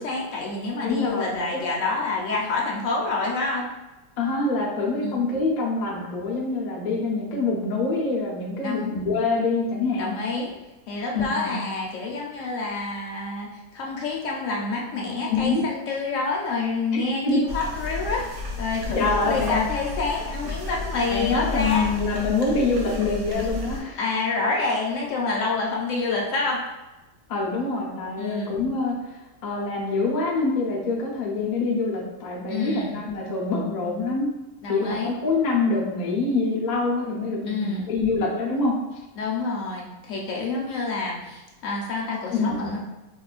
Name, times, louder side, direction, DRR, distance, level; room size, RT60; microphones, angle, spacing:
voice 1, 0.0-3.6 5.0-5.2 8.6-9.0 10.0-10.5 10.9-18.2 18.6-21.9 24.0-26.6 28.2-28.6 32.5-33.0 34.6-35.1 37.5-37.9 39.2-42.8, left 3 dB, 65° left, -2 dB, 0.9 m, -28 dB
voice 2, 0.8-1.6 4.2-10.1 11.1-11.6 15.3-15.7 16.9-17.4 18.9-19.7 21.1-24.0 27.3-28.9 29.4-34.3 34.7-38.7 42.3-42.7, left 3 dB, 85° left, -4 dB, 0.3 m, -25 dB
sound 1, 17.5-23.8, left 2 dB, 65° right, 0.8 m, -32 dB
4.4 x 2.2 x 2.4 m, 1.0 s
omnidirectional pair, 1.7 m